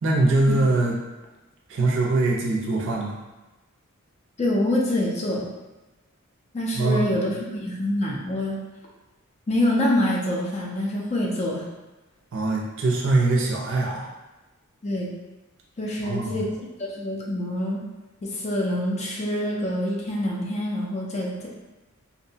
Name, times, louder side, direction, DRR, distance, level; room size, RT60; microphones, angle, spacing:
voice 1, 0.0-0.9 1.7-3.2 6.8-7.1 12.3-14.1 16.0-16.3, right 2 dB, 60° right, -3 dB, 0.5 m, -22 dB
voice 2, 4.4-5.5 6.5-8.6 9.5-11.6 14.8-15.1 15.8-16.5 16.8-17.8 18.2-21.5, left 1 dB, 30° left, -2 dB, 0.4 m, -25 dB
2.6 x 2.1 x 2.7 m, 1.1 s
head